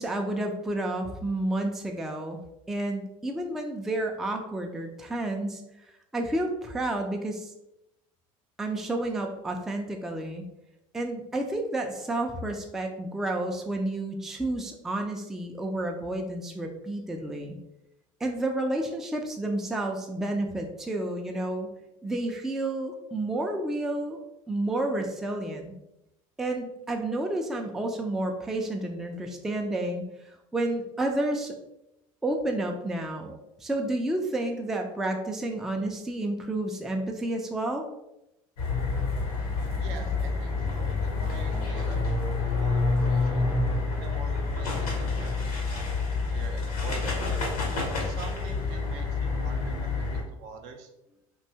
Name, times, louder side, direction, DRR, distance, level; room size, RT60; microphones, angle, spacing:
voice 1, 0.0-2.4 2.7-5.6 6.1-7.5 8.6-10.5 10.9-17.6 18.2-21.7 22.0-24.2 24.5-25.7 26.4-30.0 30.5-31.5 32.2-37.9, right 1 dB, ahead, 3 dB, 0.3 m, -30 dB
sound 1, 38.6-50.2, left 3 dB, 80° left, 0.8 m, -28 dB
voice 2, 39.8-43.5 44.0-47.3 48.0-50.9, right 5 dB, 60° right, 4 dB, 0.5 m, -45 dB
2.6 x 2.2 x 2.7 m, 0.88 s
hypercardioid pair, 75°, 18 cm